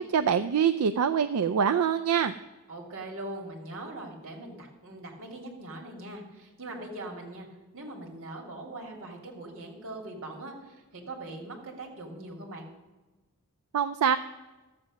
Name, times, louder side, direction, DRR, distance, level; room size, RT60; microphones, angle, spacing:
voice 1, 0.0-2.3 13.7-14.2, right 7 dB, 85° right, 10 dB, 0.4 m, -24 dB
voice 2, 2.7-7.5 7.7-12.7, right 2 dB, 65° right, 1 dB, 2.5 m, -41 dB
13.0 x 7.6 x 6.1 m, 1.2 s
head